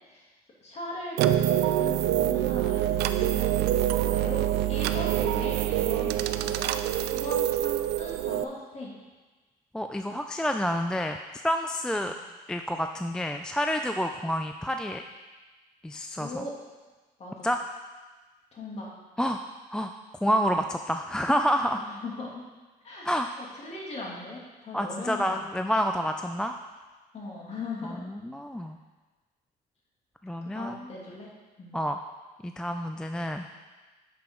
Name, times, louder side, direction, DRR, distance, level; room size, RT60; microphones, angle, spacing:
voice 1, 0.6-9.0 12.0-12.2 16.2-16.5 17.2-17.5 18.5-18.9 21.8-22.5 22.8-25.4 27.1-28.0 30.4-31.3 31.6-31.7, left 2 dB, 40° left, -4 dB, 2.6 m, -39 dB
sound 1, 1.2-8.4, right 12 dB, 80° right, 0.4 m, -25 dB
voice 2, 9.7-11.2 11.4-12.1 12.5-15.0 15.8-16.4 17.4-17.6 19.2-19.4 19.7-19.9 20.2-21.8 23.0-23.3 24.7-26.5 28.1-28.8 30.2-30.9 31.7-32.0 32.4-33.5, equal, 5° left, 5 dB, 0.3 m, -28 dB
10.0 x 6.0 x 3.8 m, 1.2 s
cardioid pair, 110°, 17 cm